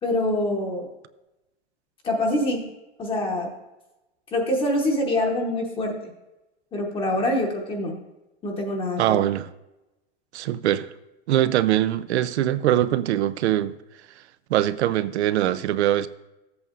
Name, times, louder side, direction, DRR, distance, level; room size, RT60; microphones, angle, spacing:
voice 1, 0.0-0.9 2.0-2.7 3.0-3.5 4.3-6.0 6.7-7.9 8.4-9.2, left 1 dB, 15° left, 0.9 m, -25 dB
voice 2, 9.0-9.5 10.3-10.9 11.3-13.8 14.5-16.1, right 12 dB, 85° right, 0.6 m, -22 dB
13.5 x 8.1 x 2.5 m
supercardioid pair, 155°, 33 cm